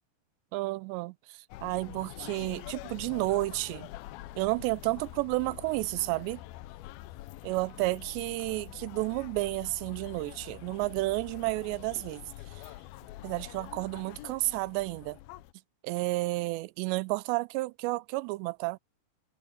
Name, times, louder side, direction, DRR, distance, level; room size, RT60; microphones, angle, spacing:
voice 1, 0.5-3.9 4.4-6.4 7.4-12.2 12.6-12.7 13.2-15.2 15.8-18.8, right 22 dB, 90° right, 2.8 m, -31 dB
sound 1, 1.5-15.5, left 16 dB, 80° left, 2.2 m, -46 dB
omnidirectional pair, 4.9 m